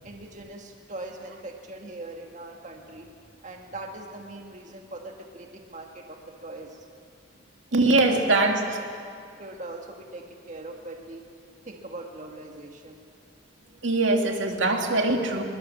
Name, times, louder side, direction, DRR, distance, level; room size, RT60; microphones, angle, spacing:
voice 1, 0.0-3.1 3.4-6.8 8.0-8.4 9.0-11.3 11.6-13.0, right 2 dB, 40° right, 2 dB, 1.7 m, -41 dB
voice 2, 7.7-8.6 13.8-15.4, right 2 dB, 80° right, 2 dB, 2.4 m, -22 dB
22.0 x 21.5 x 7.4 m, 2.3 s
head